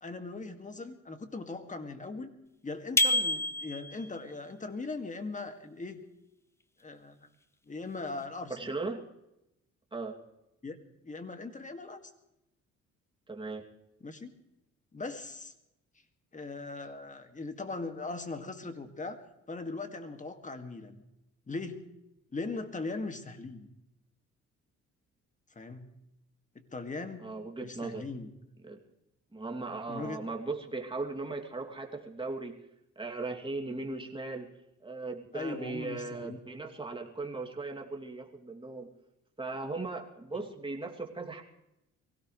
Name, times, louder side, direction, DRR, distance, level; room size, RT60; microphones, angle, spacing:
voice 1, 0.0-2.4 2.6-6.0 6.8-7.3 7.7-8.7 10.6-12.0 14.0-14.3 14.9-15.5 16.3-19.2 19.5-21.0 21.5-21.9 22.3-23.7 25.6-25.9 26.6-27.3 27.6-28.3 29.9-30.3 35.3-36.4, left 3 dB, 25° left, 7 dB, 2.1 m, -39 dB
sound 1, 3.0-4.1, left 1 dB, 10° left, 0.7 m, -27 dB
voice 2, 8.5-9.1 9.9-10.2 13.3-13.7 27.2-28.1 28.6-28.8 29.3-32.7 33.0-34.5 34.8-38.9 39.4-41.4, right 3 dB, 15° right, 1 dB, 2.6 m, -38 dB
23.5 x 17.0 x 3.2 m, 0.87 s
cardioid pair, 90°, 30 cm